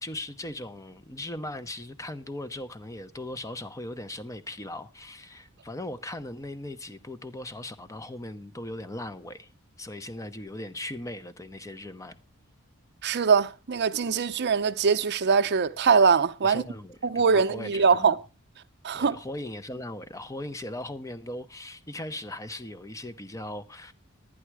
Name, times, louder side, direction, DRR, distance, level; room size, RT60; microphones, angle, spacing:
voice 1, 0.0-9.5 9.8-12.2 16.4-18.2 18.9-23.9, left 1 dB, 15° left, 0.8 m, -38 dB
voice 2, 13.0-16.6 17.1-18.2 18.8-19.2, right 5 dB, 50° right, 0.6 m, -22 dB
11.0 x 10.0 x 4.7 m
head